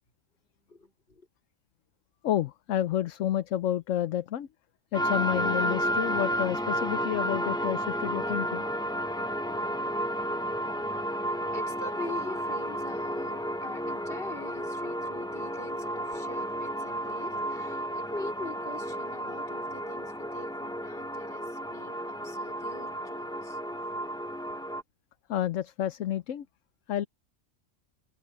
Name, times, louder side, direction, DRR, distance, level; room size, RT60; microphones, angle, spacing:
voice 1, 0.6-1.3 11.1-23.6, left 2 dB, 45° left, 4.7 m, -44 dB
voice 2, 2.2-4.5 4.9-8.7 25.3-26.5 26.9-27.1, left 11 dB, 75° left, 1.1 m, -30 dB
sound 1, 4.9-24.8, equal, 5° left, 0.6 m, -32 dB
omnidirectional pair, 1.3 m